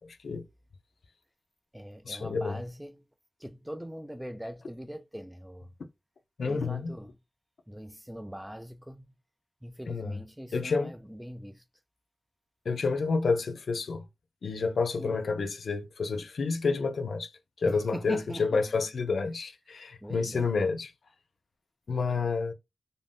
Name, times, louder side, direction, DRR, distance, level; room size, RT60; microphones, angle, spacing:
voice 1, 0.1-0.4 2.0-2.6 6.4-6.9 9.9-10.2 10.5-10.9 12.7-14.0 14.4-17.3 17.6-20.9 21.9-22.5, left 4 dB, 90° left, 0.5 m, -29 dB
voice 2, 1.7-3.1 3.4-5.7 6.4-7.2 7.7-9.1 9.6-11.6 15.0-15.2 17.6-18.5 20.0-20.6, equal, 5° right, 0.3 m, -41 dB
2.5 x 2.1 x 3.3 m
wide cardioid pair, 115°, 0 cm